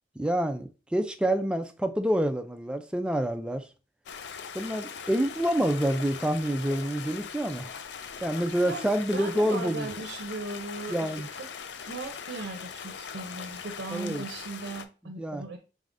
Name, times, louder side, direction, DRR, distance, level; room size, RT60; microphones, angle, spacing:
voice 1, 0.2-3.6 4.5-7.7 8.2-9.9 10.9-11.3 13.9-14.2 15.2-15.4, right 1 dB, 5° right, 0.3 m, -27 dB
Stream, 4.1-14.9, left 6 dB, 70° left, 0.4 m, -41 dB
voice 2, 8.4-11.5 11.8-15.6, right 3 dB, 75° right, 0.6 m, -38 dB
4.1 x 3.6 x 2.5 m
head